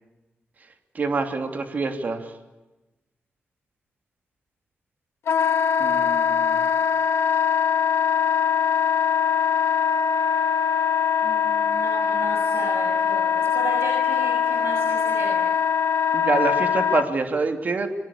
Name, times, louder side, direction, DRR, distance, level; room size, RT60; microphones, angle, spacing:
voice 1, 0.9-2.3 5.8-6.7 16.1-17.9, right 3 dB, 40° right, 6 dB, 3.0 m, -26 dB
Wind instrument woodwind instrument, 5.3-17.1, left 7 dB, 80° left, 1.4 m, -22 dB
voice 2, 11.2-15.5, right 3 dB, 70° right, 1 dB, 6.6 m, -35 dB
27.5 x 23.0 x 8.6 m, 1.1 s
wide cardioid pair, 165°, 4 cm